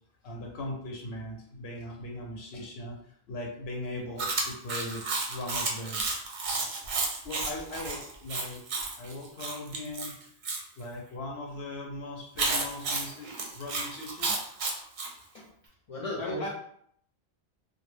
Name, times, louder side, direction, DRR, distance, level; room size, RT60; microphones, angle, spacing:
voice 1, 0.2-6.0 7.2-8.6 9.0-10.1 10.8-14.5 16.2-16.5, left 1 dB, 85° left, 0 dB, 0.8 m, -39 dB
Chewing mastication, 4.2-10.6 12.4-15.1, right 3 dB, 55° right, 0.6 m, -32 dB
voice 2, 15.9-16.5, left 2 dB, 45° left, -5 dB, 0.5 m, -36 dB
2.2 x 2.0 x 3.2 m, 0.67 s
omnidirectional pair, 1.0 m